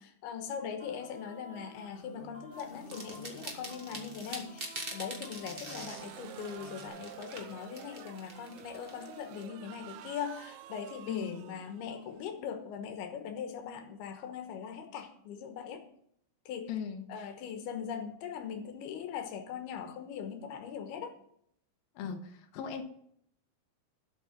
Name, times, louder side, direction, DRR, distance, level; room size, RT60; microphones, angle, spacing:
voice 1, 0.0-15.9 16.5-16.7 17.1-21.1, left 7 dB, 90° left, 6 dB, 3.1 m, -40 dB
sound 1, 0.8-6.9, right 1 dB, 5° right, 4.0 m, -51 dB
sound 2, 2.6-9.4, right 2 dB, 35° right, 0.8 m, -45 dB
sound 3, 5.6-12.8, right 13 dB, 85° right, 2.5 m, -50 dB
voice 2, 11.1-11.4 16.7-17.1 22.0-22.8, left 7 dB, 75° left, 4 dB, 2.7 m, -38 dB
12.5 x 6.1 x 7.3 m, 0.70 s
omnidirectional pair, 4.4 m